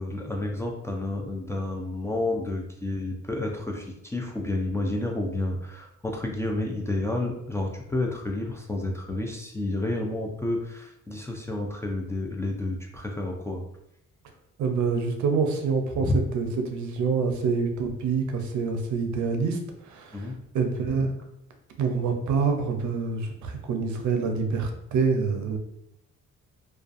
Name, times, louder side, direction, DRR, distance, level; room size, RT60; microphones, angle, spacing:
voice 1, 0.0-13.6 16.0-16.2 20.1-20.4, left 2 dB, 10° left, 0 dB, 0.3 m, -30 dB
voice 2, 14.6-21.1 21.8-25.6, right 5 dB, 70° right, 5 dB, 0.5 m, -26 dB
2.4 x 2.3 x 2.4 m, 0.78 s
cardioid pair, 90°, 30 cm